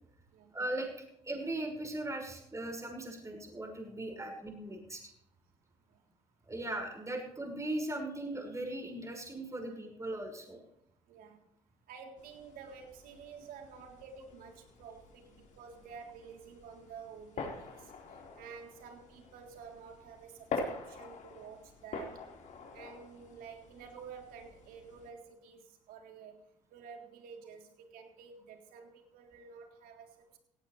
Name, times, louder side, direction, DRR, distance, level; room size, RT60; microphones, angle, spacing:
voice 1, 0.5-0.9 1.2-5.1 6.4-10.6, right 1 dB, 20° right, 1 dB, 6.1 m, -38 dB
voice 2, 11.1-11.4 11.9-17.9 18.4-22.2 22.7-26.4 26.7-30.4, right 6 dB, 65° right, 3 dB, 3.6 m, -50 dB
sound 1, 12.2-25.1, left 4 dB, 50° left, 4.5 m, -46 dB
18.0 x 17.5 x 3.4 m, 0.79 s
hypercardioid pair, 55°, 16 cm